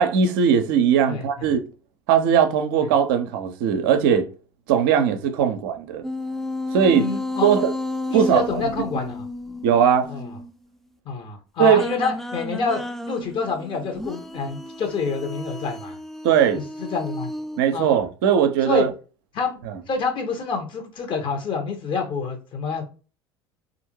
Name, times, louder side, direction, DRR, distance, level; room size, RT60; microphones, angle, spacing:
voice 1, 0.0-1.6 2.1-4.3 4.7-6.0 6.7-7.1 7.4-7.7 8.1-8.4 9.6-10.1 11.6-11.8 16.2-16.6 17.6-18.9 19.7-19.8, right 8 dB, 60° right, 0.6 m, -19 dB
voice 2, 1.1-1.5 6.9-7.5 8.1-9.2 10.1-10.3 11.1-16.0 16.5-17.3 17.7-17.9 18.6-18.8 19.3-19.6 19.9-22.8, left 5 dB, 40° left, 1.0 m, -27 dB
sound 1, 6.0-10.5 11.7-17.6, left 1 dB, ahead, 0.3 m, -32 dB
3.4 x 2.5 x 3.0 m
figure-of-eight pair, 65°, 13 cm